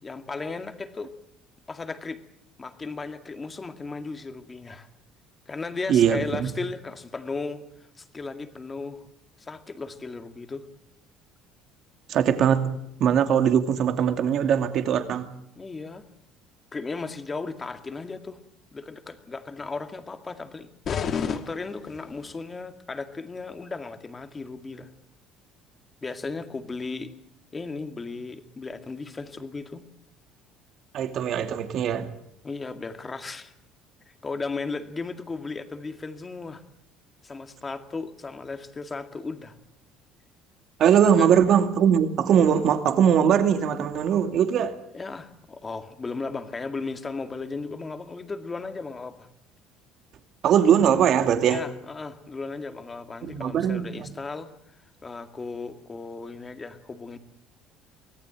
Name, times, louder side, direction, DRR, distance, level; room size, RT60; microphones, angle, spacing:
voice 1, 0.0-1.1 1.7-2.2 2.6-4.9 5.5-7.6 8.0-9.0 9.4-10.7 15.6-16.0 16.7-18.4 18.7-20.7 21.1-24.9 26.0-27.1 27.5-29.8 32.4-33.5 34.2-36.6 37.2-39.5 41.2-41.3 44.9-49.3 51.5-54.5 55.0-57.2, left 4 dB, 20° left, 8 dB, 2.1 m, -35 dB
voice 2, 5.9-6.5 12.1-12.7 13.0-15.3 30.9-32.1 40.8-44.7 50.4-51.6 53.2-54.1, right 8 dB, 50° right, 8 dB, 2.5 m, -21 dB
sound 1, 20.8-22.3, left 7 dB, 40° left, 2.2 m, -31 dB
25.0 x 18.0 x 9.1 m, 0.76 s
cardioid pair, 135°, 0 cm